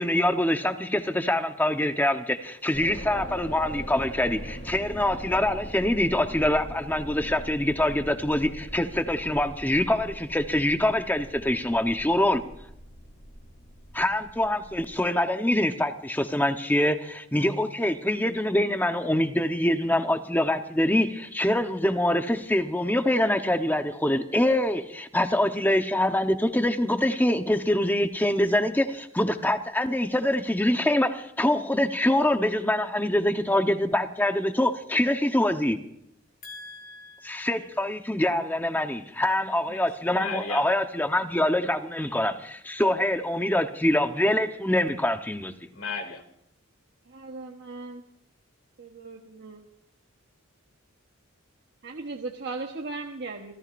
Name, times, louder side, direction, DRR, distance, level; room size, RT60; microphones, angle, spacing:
voice 1, 0.0-12.4 13.9-35.8 37.2-45.5, left 1 dB, 10° left, 7 dB, 1.0 m, -25 dB
sound 1, 2.7-15.1, equal, 50° left, 5.2 m, -41 dB
voice 2, 36.4-37.7 39.7-39.8 40.1-40.6 45.7-46.2, left 4 dB, 65° left, 5 dB, 2.7 m, -37 dB
voice 3, 47.0-48.0 48.8-49.7 51.8-53.5, right 3 dB, 50° right, 2 dB, 1.2 m, -37 dB
29.0 x 14.5 x 2.6 m, 0.75 s
head